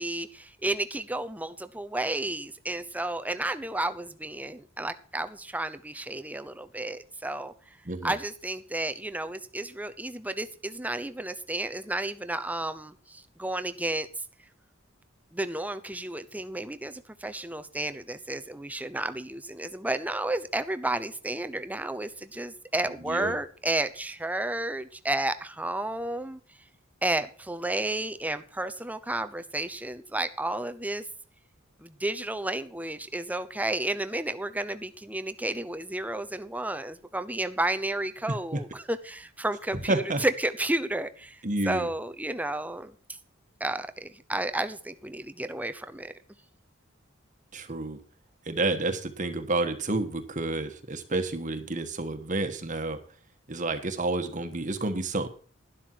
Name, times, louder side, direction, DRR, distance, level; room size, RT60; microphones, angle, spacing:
voice 1, 0.0-7.5 8.0-14.1 15.3-26.4 27.0-31.0 31.8-41.4 41.7-42.9 43.6-46.1, right 1 dB, 10° right, 10 dB, 0.8 m, -32 dB
voice 2, 7.8-8.1 22.8-23.4 38.3-38.6 39.9-40.2 41.4-41.9 47.5-48.0 48.4-53.0 53.5-55.3, right 2 dB, 40° right, 7 dB, 1.4 m, -30 dB
12.0 x 11.5 x 4.7 m, 0.40 s
head